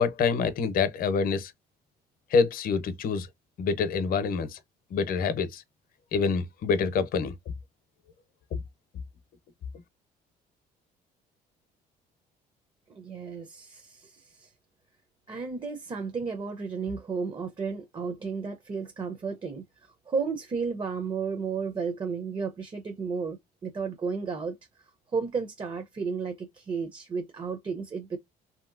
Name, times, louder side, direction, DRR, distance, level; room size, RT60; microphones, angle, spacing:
voice 1, 0.0-1.5 2.3-3.3 3.6-4.6 4.9-5.6 6.1-7.3, left 5 dB, 60° left, 0.7 m, -26 dB
voice 2, 12.9-14.5 15.3-19.6 20.1-24.6 25.1-28.2, right 5 dB, 30° right, 0.6 m, -33 dB
3.0 x 2.8 x 2.5 m
cardioid pair, 110°, 17 cm